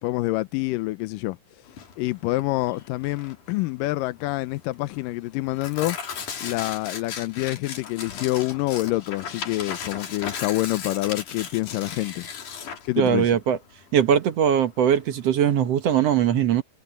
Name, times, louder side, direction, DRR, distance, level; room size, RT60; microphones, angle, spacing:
voice 1, 0.0-1.4 2.0-6.0 6.4-12.3 12.9-13.4, left 19 dB, 85° left, 2.3 m, -27 dB
Tearing, 1.7-15.9, left 7 dB, 65° left, 4.2 m, -37 dB
voice 2, 13.0-13.6 13.9-16.6, right 9 dB, 60° right, 1.9 m, -20 dB
omnidirectional pair, 3.8 m